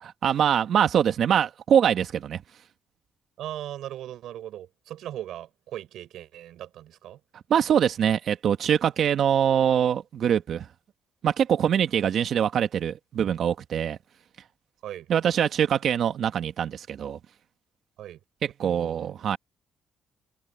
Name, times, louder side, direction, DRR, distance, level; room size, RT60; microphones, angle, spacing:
voice 1, 0.0-2.4 7.5-10.7 11.2-14.0 15.1-17.2 18.4-19.4, right 8 dB, 65° right, 1.8 m, -23 dB
voice 2, 3.4-7.2 14.8-15.1 18.0-18.2 18.6-19.1, right 12 dB, 80° right, 7.2 m, -38 dB
cardioid pair, 90°, 0 cm